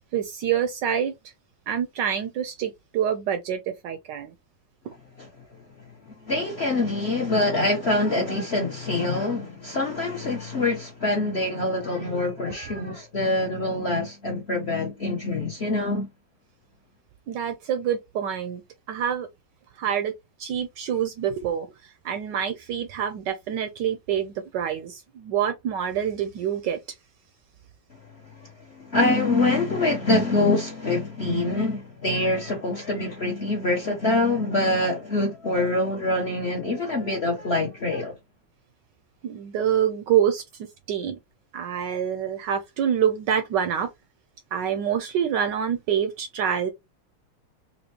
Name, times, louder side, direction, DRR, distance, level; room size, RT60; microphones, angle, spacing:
voice 1, 0.1-1.1 1.7-4.3 17.3-18.6 18.9-19.3 19.8-20.1 20.4-26.8 39.2-40.4 40.9-41.2 41.5-43.9 44.5-46.7, right 9 dB, 75° right, 1.1 m, -26 dB
voice 2, 6.1-16.1 28.4-28.5 28.8-38.1, left 2 dB, 50° left, 0.8 m, -25 dB
4.2 x 2.9 x 2.8 m
omnidirectional pair, 2.3 m